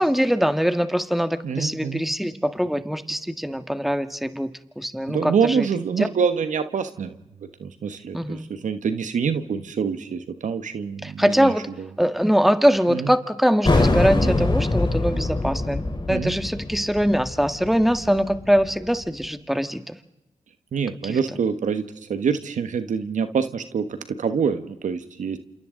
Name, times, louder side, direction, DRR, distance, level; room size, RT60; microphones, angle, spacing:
voice 1, 0.0-4.5 4.8-5.7 6.0-6.1 8.1-8.4 11.0-11.7 12.0-19.9 21.0-21.2, equal, ahead, 9 dB, 1.8 m, -22 dB
voice 2, 1.4-2.0 5.1-7.2 7.6-11.9 12.9-13.1 14.2-14.5 16.1-16.4 20.7-25.4, right 6 dB, 80° right, 10 dB, 1.4 m, -26 dB
sound 1, 13.6-19.0, left 2 dB, 35° left, 4.0 m, -23 dB
28.0 x 27.5 x 3.9 m, 0.92 s
supercardioid pair, 40°, 13 cm